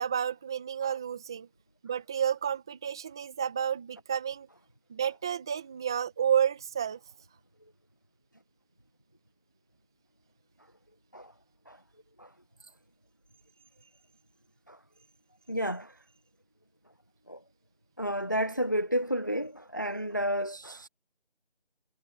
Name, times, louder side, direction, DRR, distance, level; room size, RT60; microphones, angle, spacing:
voice 1, 0.0-1.5 1.8-4.5 4.9-7.0, right 8 dB, 5° right, 1.6 m, -30 dB
voice 2, 15.5-15.9 17.3-17.4 18.0-20.9, equal, 20° left, 0.9 m, -31 dB
figure-of-eight pair, 170°, 31 cm